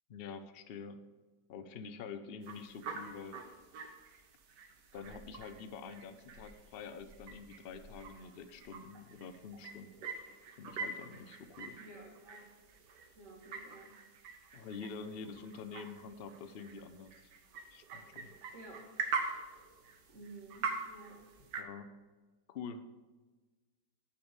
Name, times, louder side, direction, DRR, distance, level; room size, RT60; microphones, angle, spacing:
voice 1, 0.1-1.0 1.5-3.4 4.9-9.9 10.6-11.8 14.5-17.3 17.7-18.3 21.4-21.9 22.5-22.8, left 5 dB, 85° left, 10 dB, 0.5 m, -47 dB
sound 1, 2.4-21.6, right 4 dB, 80° right, 1.6 m, -45 dB
voice 2, 11.8-12.4 13.1-13.9 18.5-18.8 20.1-21.2, right 2 dB, 45° right, -1 dB, 2.4 m, -52 dB
9.9 x 5.2 x 7.1 m, 1.3 s
omnidirectional pair, 1.8 m